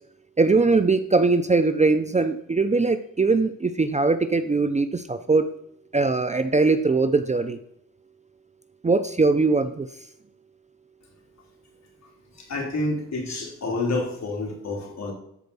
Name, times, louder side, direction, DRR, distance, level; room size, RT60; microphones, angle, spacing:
voice 1, 0.4-5.5 5.9-7.6 8.8-9.9, right 3 dB, 20° right, 10 dB, 0.5 m, -21 dB
voice 2, 12.5-15.1, left 2 dB, 55° left, 0 dB, 3.3 m, -28 dB
13.5 x 4.5 x 6.9 m, 0.74 s
wide cardioid pair, 110°, 33 cm